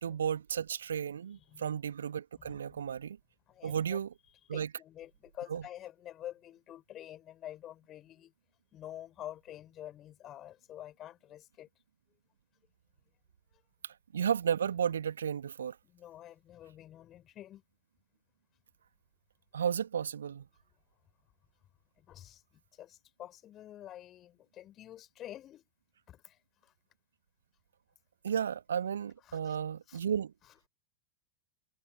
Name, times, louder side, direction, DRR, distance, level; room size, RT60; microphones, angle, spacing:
voice 1, 0.0-3.2 3.6-4.1 4.5-4.7 5.5-5.6 13.8-15.8 19.5-20.5 28.2-30.3, right 8 dB, 65° right, 2.3 m, -33 dB
voice 2, 1.3-1.7 2.4-2.8 3.5-4.0 4.5-8.3 8.7-11.7 13.5-13.6 15.8-17.6 22.0-25.7 26.1-26.7 29.2-29.6 29.9-30.0 30.4-30.7, left 12 dB, 30° left, 5.3 m, -48 dB
figure-of-eight pair, 90°, 0 cm